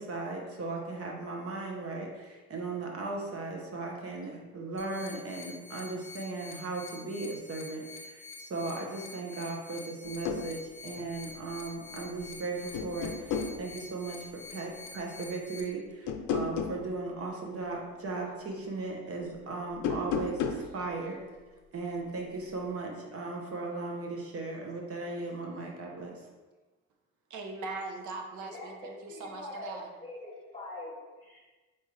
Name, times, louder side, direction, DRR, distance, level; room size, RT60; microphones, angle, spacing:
voice 1, 0.0-21.2 21.7-26.2, right 3 dB, 50° right, 0 dB, 1.0 m, -37 dB
sound 1, 4.8-15.6, left 3 dB, 45° left, 0.9 m, -47 dB
sound 2, 10.0-10.5 12.0-12.4 12.7-13.6 16.1-16.8 19.7-20.7, left 6 dB, 80° left, 0.5 m, -32 dB
voice 2, 27.3-29.9, right 3 dB, 80° right, 3 dB, 0.7 m, -40 dB
voice 3, 28.4-31.5, left 1 dB, 20° left, -7 dB, 1.2 m, -44 dB
4.3 x 3.6 x 3.2 m, 1.3 s
cardioid pair, 90°, 30 cm